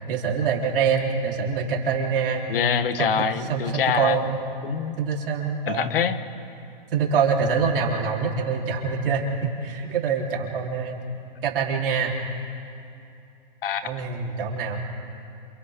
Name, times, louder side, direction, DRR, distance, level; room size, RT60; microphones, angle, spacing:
voice 1, 0.1-2.4 3.0-4.4 5.0-5.9 6.9-9.3 9.6-11.0 11.4-12.2 13.8-14.8, right 6 dB, 60° right, -1 dB, 3.9 m, -25 dB
voice 2, 2.5-4.2 4.6-5.0 5.7-6.2 13.6-13.8, left 7 dB, 65° left, 11 dB, 1.4 m, -24 dB
29.0 x 28.0 x 3.7 m, 2.6 s
hypercardioid pair, 155°, 30 cm